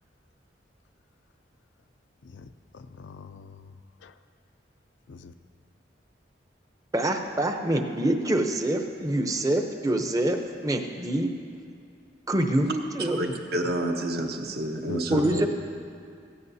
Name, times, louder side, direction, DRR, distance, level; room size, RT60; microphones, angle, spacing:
voice 1, 2.2-3.7 4.0-4.1 5.1-5.3 14.9-15.5, left 4 dB, 80° left, 8 dB, 0.5 m, -39 dB
voice 2, 6.9-11.3 12.3-13.2 15.1-15.5, right 1 dB, 20° right, 4 dB, 0.7 m, -25 dB
voice 3, 13.0-15.4, right 1 dB, 55° right, 3 dB, 1.0 m, -29 dB
16.0 x 15.5 x 2.7 m, 2.3 s
head